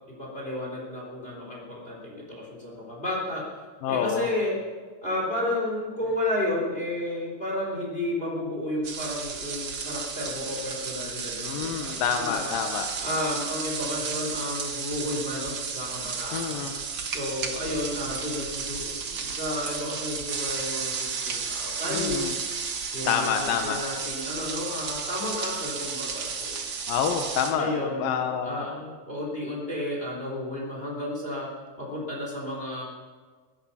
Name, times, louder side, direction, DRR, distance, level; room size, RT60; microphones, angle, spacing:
voice 1, 0.1-3.5 3.9-4.6 5.0-12.5 13.0-16.7 17.1-22.4 22.9-26.7 27.6-31.5 31.8-32.8, left 1 dB, 15° left, -2 dB, 3.6 m, -32 dB
voice 2, 3.8-4.3 11.4-12.9 16.3-16.7 21.9-22.3 23.0-23.8 26.9-28.7, left 7 dB, 75° left, 5 dB, 2.7 m, -28 dB
sound 1, 8.8-27.5, right 5 dB, 65° right, 1.1 m, -33 dB
21.5 x 11.0 x 5.8 m, 1.5 s
omnidirectional pair, 4.3 m